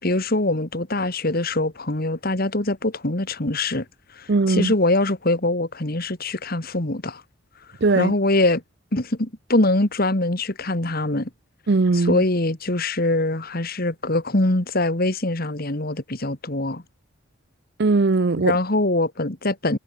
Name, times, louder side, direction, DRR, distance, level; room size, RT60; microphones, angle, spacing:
voice 1, 0.0-3.9 4.2-7.2 7.9-8.6 8.9-11.3 12.1-16.8 18.4-19.8, left 2 dB, 45° left, 2.1 m, -23 dB
voice 2, 4.3-4.7 7.8-8.1 11.7-12.2 17.8-18.6, right 3 dB, 50° right, 0.6 m, -19 dB
head